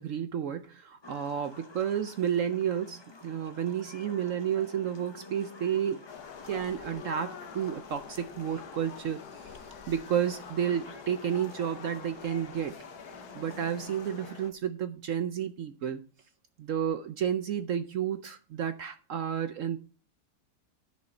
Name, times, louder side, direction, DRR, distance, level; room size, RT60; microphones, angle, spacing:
voice 1, 0.0-6.0 6.5-9.5 9.9-12.7 13.3-16.0 16.6-19.8, right 9 dB, 65° right, 10 dB, 0.8 m, -31 dB
sound 1, 1.0-14.3, left 2 dB, 35° left, 0.4 m, -51 dB
sound 2, 6.1-14.5, left 7 dB, 70° left, 1.5 m, -46 dB
10.5 x 6.4 x 4.3 m, 0.37 s
omnidirectional pair, 1.8 m